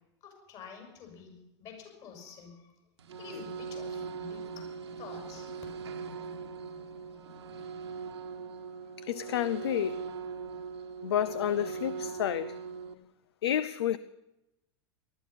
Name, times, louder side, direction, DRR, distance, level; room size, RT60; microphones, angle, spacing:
voice 1, 0.2-2.7 3.2-4.4 5.0-5.5, left 6 dB, 40° left, 2 dB, 6.3 m, -48 dB
sound 1, 3.0-12.9, right 5 dB, 70° right, 1.3 m, -40 dB
voice 2, 9.0-10.0 11.0-12.6 13.4-14.0, left 10 dB, 65° left, 16 dB, 0.5 m, -30 dB
19.0 x 13.0 x 5.9 m, 0.93 s
figure-of-eight pair, 85°, 15 cm